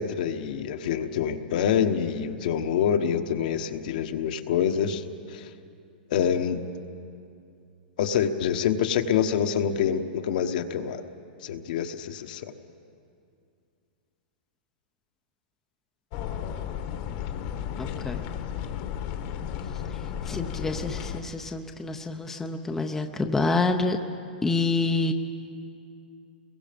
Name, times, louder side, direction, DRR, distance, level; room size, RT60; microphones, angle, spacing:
voice 1, 0.0-5.0 5.3-5.5 6.1-6.6 8.0-11.0 11.4-12.5, left 8 dB, 55° left, 7 dB, 1.2 m, -26 dB
sound 1, 16.1-21.2, left 9 dB, 40° left, 1.2 m, -33 dB
voice 2, 17.8-18.2 20.2-24.0 24.4-25.1, left 3 dB, 5° left, 4 dB, 0.7 m, -27 dB
29.0 x 22.5 x 5.3 m, 2.5 s
hypercardioid pair, 155°, 5 cm